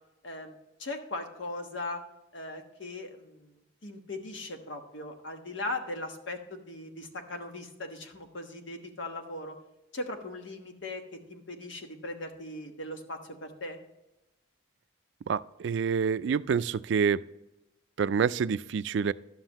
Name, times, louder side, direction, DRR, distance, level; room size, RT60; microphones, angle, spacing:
voice 1, 0.2-0.5 0.8-2.0 2.3-9.6 9.9-11.0 11.3-13.8, left 2 dB, 80° left, 4 dB, 1.3 m, -39 dB
voice 2, 15.3-17.2 18.0-19.1, right 6 dB, 75° right, 17 dB, 0.3 m, -27 dB
11.5 x 7.4 x 3.0 m, 0.95 s
head